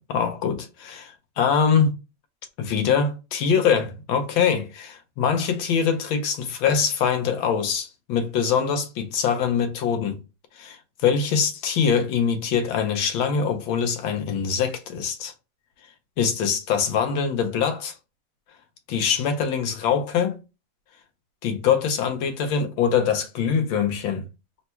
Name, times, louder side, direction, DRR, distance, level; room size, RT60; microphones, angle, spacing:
voice 1, 0.1-1.9 2.6-10.2 10.6-15.3 16.2-17.9 18.9-20.4 21.4-24.2, left 7 dB, 85° left, 1.6 m, -23 dB
4.1 x 2.2 x 4.2 m
omnidirectional pair, 2.1 m